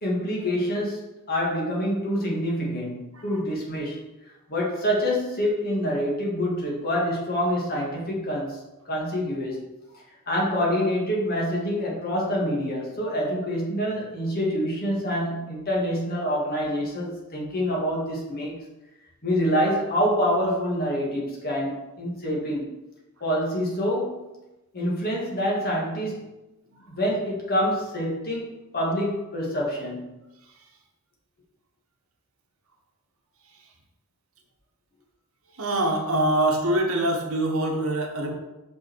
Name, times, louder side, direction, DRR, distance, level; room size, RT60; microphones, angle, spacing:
voice 1, 0.0-4.0 4.5-9.7 10.3-18.6 19.2-22.8 23.2-24.3 24.7-26.4 26.9-30.2, equal, 45° left, -3 dB, 1.9 m, -26 dB
voice 2, 35.6-38.3, right 1 dB, 70° right, 1 dB, 1.2 m, -24 dB
5.6 x 5.4 x 4.6 m, 1.0 s
head